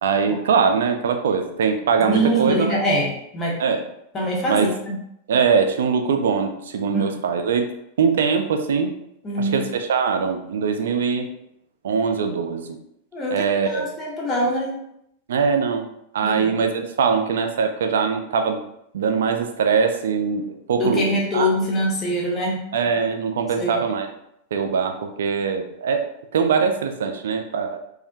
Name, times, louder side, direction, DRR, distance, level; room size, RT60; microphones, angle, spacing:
voice 1, 0.0-2.8 3.6-3.8 4.5-4.7 5.3-7.7 8.0-8.9 9.4-11.3 11.8-12.8 13.3-13.9 15.3-15.9 16.1-18.6 18.9-21.1 21.3-21.5 22.7-24.1 24.5-26.0 26.3-27.8, right 6 dB, 60° right, 5 dB, 0.3 m, -22 dB
voice 2, 2.0-3.6 4.1-4.9 6.9-7.2 9.2-9.6 13.1-14.8 16.2-16.6 20.8-22.6 23.6-23.8, equal, 25° left, -3 dB, 0.6 m, -24 dB
2.3 x 2.1 x 2.5 m, 0.77 s
figure-of-eight pair, 90°, 0 cm